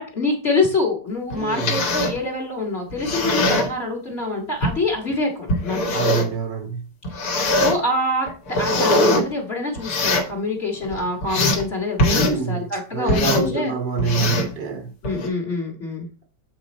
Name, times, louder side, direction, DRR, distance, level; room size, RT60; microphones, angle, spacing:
voice 1, 0.0-6.1 7.1-8.3 8.6-13.7 15.0-16.1, left 2 dB, 40° left, 1.7 m, -25 dB
sound 1, 1.3-2.2 2.9-3.7 4.6-4.7 5.5-6.3 7.0-7.8 8.3-9.2 9.8-10.3 10.8-11.6 12.0-12.4 13.1-13.5 14.0-14.5 15.0-15.3, left 1 dB, 60° left, 1.7 m, -21 dB
voice 2, 1.4-1.8 5.9-6.9 12.1-12.7 12.9-14.9, right 4 dB, 80° right, 1.6 m, -26 dB
8.0 x 3.9 x 4.2 m
omnidirectional pair, 1.9 m